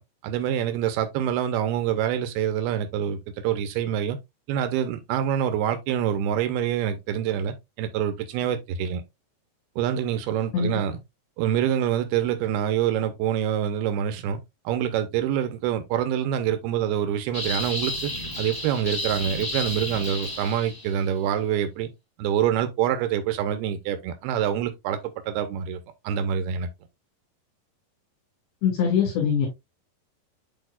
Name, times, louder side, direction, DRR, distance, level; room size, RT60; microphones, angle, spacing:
voice 1, 0.2-4.2 4.5-9.0 9.8-11.0 11.4-14.4 14.7-18.1 18.4-21.9 22.2-25.8 26.0-26.7, right 9 dB, 80° right, 2.5 m, -26 dB
sound 1, 17.3-21.0, left 1 dB, 10° left, 1.4 m, -32 dB
voice 2, 28.6-29.5, left 7 dB, 80° left, 4.6 m, -22 dB
10.0 x 4.2 x 2.3 m
omnidirectional pair, 5.0 m